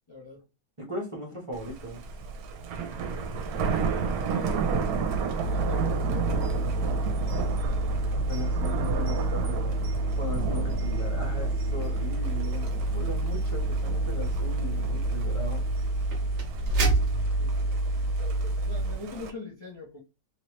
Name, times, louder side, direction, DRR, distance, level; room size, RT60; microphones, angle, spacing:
voice 1, 0.1-0.4 3.8-4.7 5.1-7.0 17.4-17.7 18.2-20.0, left 3 dB, 35° left, 0.4 m, -43 dB
voice 2, 0.8-2.0 8.1-9.8 10.1-15.6 17.4-17.5, left 1 dB, 25° right, 0.9 m, -38 dB
Thunder, 1.5-19.3, right 5 dB, 75° right, 1.1 m, -33 dB
Boom, 3.6-7.0, left 3 dB, 80° left, 1.1 m, -48 dB
sound 1, 5.4-19.0, right 2 dB, 55° right, 0.9 m, -28 dB
3.1 x 2.9 x 2.9 m
omnidirectional pair, 1.6 m